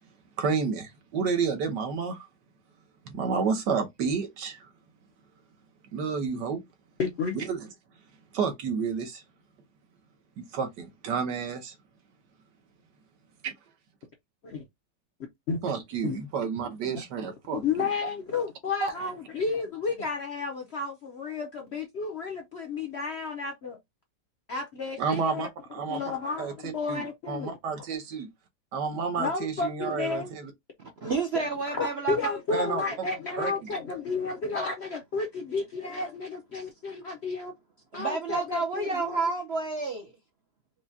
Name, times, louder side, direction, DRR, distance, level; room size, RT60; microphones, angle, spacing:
voice 1, 0.4-2.3 3.0-4.7 5.9-6.6 7.3-7.6 8.3-9.2 10.4-11.7 13.4-13.5 15.6-17.9 18.8-19.0 25.0-26.0 26.4-28.3 28.7-30.5 32.5-32.8 33.4-33.7, right 5 dB, 75° right, 1.5 m, -30 dB
voice 2, 7.0-7.4 14.4-14.6 15.5-15.6 16.0-16.2 17.5-23.8 24.5-25.5 25.9-27.5 29.2-30.3 31.3-37.5 37.9-39.3, left 4 dB, 55° left, 0.7 m, -32 dB
voice 3, 31.0-32.3 37.9-40.1, right 4 dB, 55° right, 0.7 m, -30 dB
4.8 x 2.2 x 2.7 m
omnidirectional pair, 1.9 m